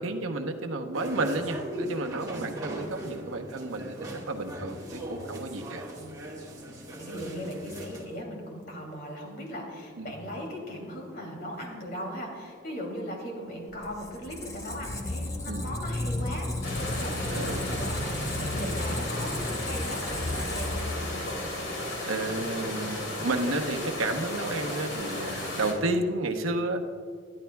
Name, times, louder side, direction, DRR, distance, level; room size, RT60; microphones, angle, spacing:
voice 1, 0.0-5.9 10.0-10.2 15.5-15.8 17.3-17.6 22.0-26.8, right 2 dB, 85° right, 5 dB, 0.9 m, -31 dB
sound 1, 0.9-8.0, equal, 15° right, 1.4 m, -39 dB
voice 2, 6.7-16.5 16.8-21.3, equal, 45° left, 0 dB, 2.8 m, -38 dB
Squeak, 13.7-21.4, left 1 dB, 15° left, 0.9 m, -33 dB
sound 2, 16.6-25.7, left 1 dB, 75° left, 3.2 m, -34 dB
21.0 x 11.5 x 2.3 m, 2.2 s
head